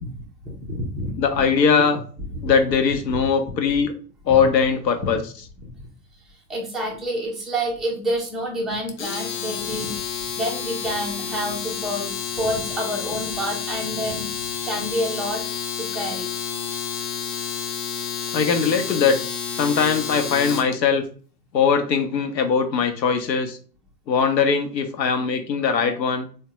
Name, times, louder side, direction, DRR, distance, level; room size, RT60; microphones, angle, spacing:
voice 1, 0.4-1.5 2.3-2.5 3.1-3.3 3.7-3.8 4.3-4.4 5.6-5.7 6.3-9.9 10.4-15.4 15.8-16.3, equal, ahead, -2 dB, 0.4 m, -29 dB
voice 2, 1.1-2.0 2.4-3.9 4.3-5.2 18.3-19.2 19.6-21.1 21.5-23.6 24.1-26.3, left 6 dB, 80° left, 7 dB, 0.8 m, -20 dB
Domestic sounds home sounds, 8.9-20.7, left 7 dB, 45° left, 0.7 m, -30 dB
3.5 x 2.2 x 2.9 m, 0.41 s
hypercardioid pair, 95°, 50 cm